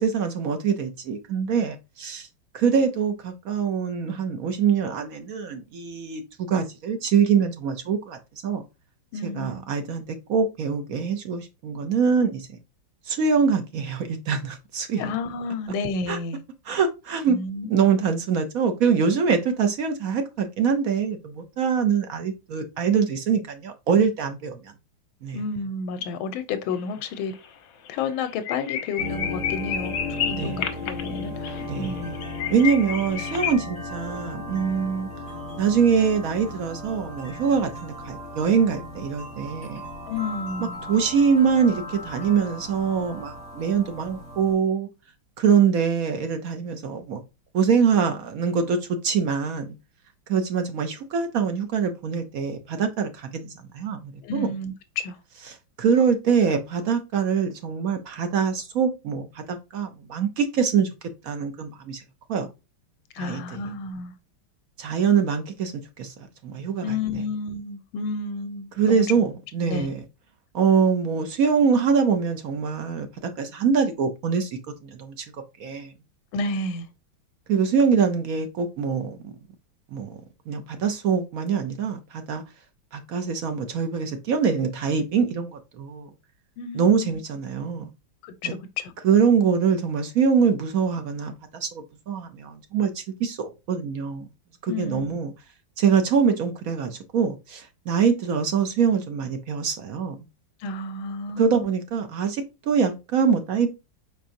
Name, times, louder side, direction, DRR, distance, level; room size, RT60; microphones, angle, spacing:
voice 1, 0.0-2.3 2.5-6.2 6.5-8.6 9.2-12.5 13.1-15.0 16.1-16.2 16.7-17.4 17.7-24.7 25.2-25.4 30.3-30.6 31.6-32.0 32.5-35.1 35.6-39.8 40.9-44.9 45.4-47.2 47.5-49.7 50.3-54.5 55.8-60.9 61.2-62.0 62.3-62.5 63.2-63.4 64.8-65.7 66.0-66.1 66.4-67.0 68.8-70.0 70.5-75.2 75.6-75.9 77.5-79.3 79.9-80.2 80.5-82.4 82.9-86.1 86.7-87.9 88.4-88.5 89.0-94.3 94.6-95.3 95.8-100.2 101.4-103.7, right 6 dB, 65° right, 0.9 m, -24 dB
voice 2, 9.1-9.6 15.0-16.4 17.3-17.7 25.3-27.3 27.9-30.0 30.2-32.2 40.1-40.8 54.2-55.2 63.1-64.1 66.8-69.0 69.7-69.9 76.3-76.9 86.6-87.2 88.2-88.9 94.7-95.2 100.6-101.7, left 4 dB, 85° left, 1.4 m, -31 dB
sound 1, 26.7-27.1 27.3-27.5 27.9-28.0 28.2-33.5, left 8 dB, 70° left, 1.4 m, -31 dB
sound 2, 29.0-44.5, left 2 dB, 5° right, 2.5 m, -36 dB
4.7 x 4.3 x 2.6 m
omnidirectional pair, 2.2 m